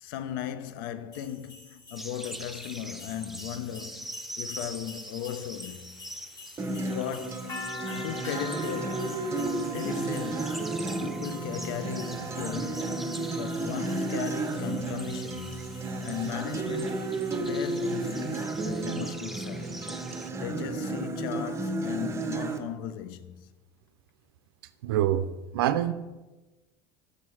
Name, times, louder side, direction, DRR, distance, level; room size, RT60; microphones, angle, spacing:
voice 1, 0.0-5.9 6.8-7.5 7.9-9.2 9.7-15.7 16.0-17.0 17.3-19.7 20.4-23.5, left 10 dB, 75° left, 0.5 m, -37 dB
sound 1, 1.1-18.8, left 1 dB, 35° left, 2.2 m, -45 dB
sound 2, 2.0-20.3, right 1 dB, ahead, 0.4 m, -44 dB
Acoustic guitar, 6.6-22.6, right 2 dB, 25° right, 0.9 m, -32 dB
voice 2, 24.8-25.3 25.5-25.9, right 12 dB, 85° right, 0.4 m, -25 dB
6.5 x 5.6 x 4.6 m
hypercardioid pair, 90°, 12 cm